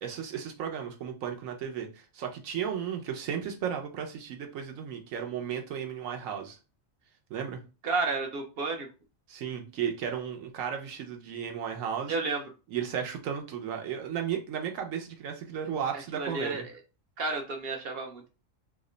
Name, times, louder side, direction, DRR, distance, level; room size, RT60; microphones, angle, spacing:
voice 1, 0.0-6.6 7.3-7.6 9.3-12.1 12.7-16.6, right 8 dB, 85° right, 1.0 m, -34 dB
voice 2, 7.8-8.9 12.1-12.4 16.1-16.6 17.2-18.3, right 3 dB, 60° right, 0.7 m, -31 dB
2.8 x 2.1 x 3.7 m
omnidirectional pair, 1.4 m